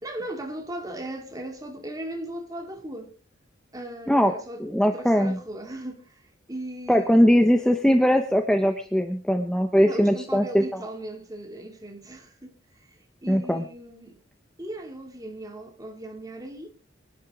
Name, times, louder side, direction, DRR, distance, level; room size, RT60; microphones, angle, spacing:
voice 1, 0.0-3.1 3.7-7.1 9.8-12.5 12.8-12.9 13.2-14.2 14.6-16.7, right 1 dB, 20° right, 2.4 m, -38 dB
voice 2, 4.6-5.4 6.9-10.6 13.3-13.6, equal, 5° left, 1.0 m, -20 dB
24.5 x 10.5 x 3.7 m
head